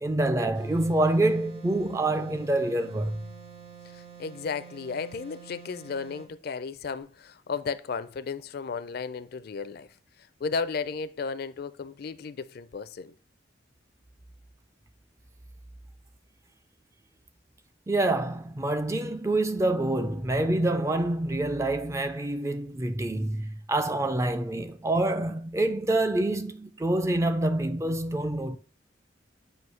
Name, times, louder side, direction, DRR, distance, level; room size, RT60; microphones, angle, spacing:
voice 1, 0.0-3.2 17.9-28.6, right 1 dB, 15° right, 0.3 m, -26 dB
sound 1, 0.5-6.3, right 8 dB, 70° right, 2.4 m, -48 dB
voice 2, 3.8-13.1, left 5 dB, 55° left, 0.4 m, -34 dB
7.7 x 2.7 x 5.5 m
head